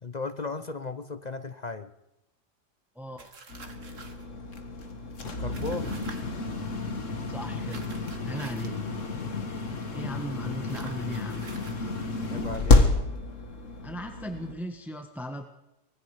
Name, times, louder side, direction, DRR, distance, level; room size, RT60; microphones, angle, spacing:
voice 1, 0.0-1.9 5.2-6.0 12.3-12.9, left 3 dB, 35° left, 11 dB, 0.9 m, -36 dB
voice 2, 2.9-3.3 7.3-7.9 8.3-8.8 9.9-11.5 13.8-15.5, equal, ahead, 5 dB, 1.5 m, -37 dB
sound 1, 3.2-4.2 5.5-6.2 7.7-8.8 10.7-11.8, right 4 dB, 80° right, 2.3 m, -47 dB
sound 2, 3.5-14.5, left 3 dB, 75° left, 2.2 m, -29 dB
24.5 x 21.5 x 5.1 m, 0.89 s
omnidirectional pair, 1.3 m